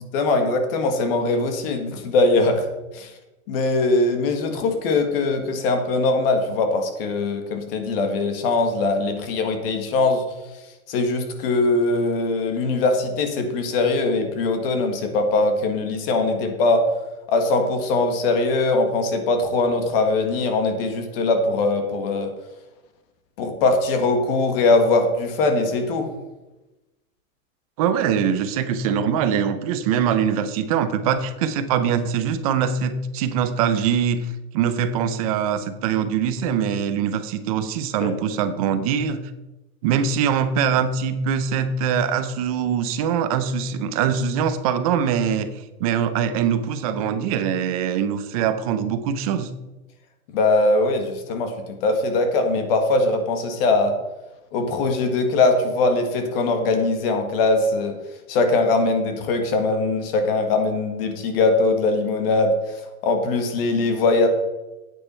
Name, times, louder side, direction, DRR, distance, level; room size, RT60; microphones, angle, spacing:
voice 1, 0.1-2.7 2.9-3.1 3.5-10.2 10.9-16.9 17.3-22.3 23.4-26.1 38.0-38.1 50.3-54.0 54.5-58.0 58.3-64.3, left 3 dB, 45° left, 6 dB, 1.7 m, -21 dB
voice 2, 27.8-34.2 34.5-39.2 39.8-49.5, right 7 dB, 25° right, 11 dB, 0.5 m, -23 dB
9.9 x 9.1 x 4.4 m, 1.0 s
supercardioid pair, 165°, 41 cm